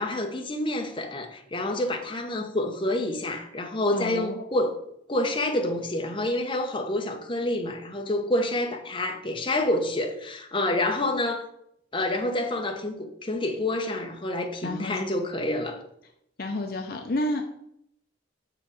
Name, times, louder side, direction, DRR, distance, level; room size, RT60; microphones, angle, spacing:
voice 1, 0.0-4.8 5.1-11.4 11.9-15.8, left 1 dB, 25° left, 0.9 m, -28 dB
voice 2, 3.9-4.4 14.6-15.0 16.4-17.4, left 1 dB, 50° left, 0.6 m, -30 dB
6.6 x 4.8 x 4.9 m
head